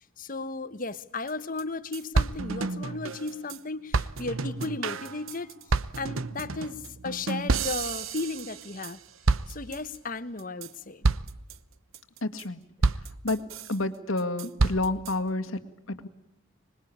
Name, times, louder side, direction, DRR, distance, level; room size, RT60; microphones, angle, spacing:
voice 1, 0.2-5.5 6.0-9.0 9.5-11.0, left 3 dB, 40° left, 13 dB, 1.2 m, -35 dB
sound 1, 1.3-1.4 1.6-1.7 1.9-3.6 3.9-9.0 9.3-10.0 10.4-10.7 11.0-11.5 11.9-12.4 12.8-13.8 14.2-15.1, right 3 dB, 75° right, 0.9 m, -29 dB
voice 2, 12.2-12.6 13.2-13.4 13.7-16.1, left 2 dB, 75° left, 7 dB, 1.9 m, -29 dB
26.0 x 21.0 x 8.7 m, 0.81 s
head